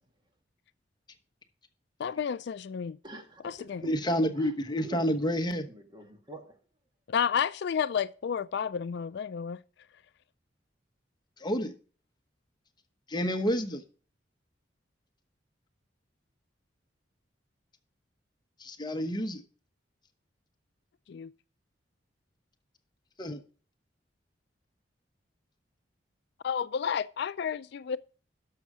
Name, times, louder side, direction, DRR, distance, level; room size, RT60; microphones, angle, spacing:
voice 1, 2.0-3.0 3.4-3.8 7.1-9.6 21.1-21.3 26.4-28.0, left 7 dB, 65° left, 0.4 m, -31 dB
voice 2, 3.0-3.9 4.4-4.5 4.8-5.0 5.7-6.6, right 2 dB, 25° right, 1.7 m, -45 dB
voice 3, 3.8-5.7 11.4-11.7 13.1-13.8 18.6-19.4 23.2-23.4, equal, 25° left, 1.0 m, -29 dB
11.5 x 6.5 x 4.8 m
head